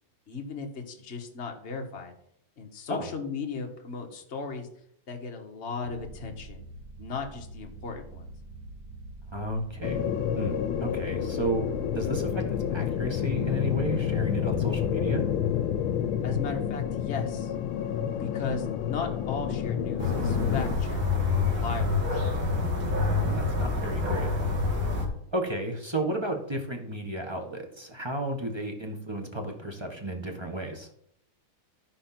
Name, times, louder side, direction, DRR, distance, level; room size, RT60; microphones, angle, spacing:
voice 1, 0.3-2.1 2.6-4.7 5.1-6.6 7.0-8.3 16.2-17.5 18.1-22.0, left 4 dB, 35° left, 2 dB, 1.5 m, -36 dB
sound 1, 5.8-18.7, right 2 dB, 50° right, 1.2 m, -44 dB
voice 2, 9.3-11.7 11.9-15.2 23.1-24.3 25.3-30.9, right 1 dB, 15° right, 4 dB, 1.0 m, -33 dB
sound 2, 9.8-20.8, left 9 dB, 75° left, 1.4 m, -29 dB
sound 3, 20.0-25.1, left 3 dB, 65° right, 3.0 m, -27 dB
13.0 x 4.9 x 5.9 m, 0.70 s
omnidirectional pair, 2.2 m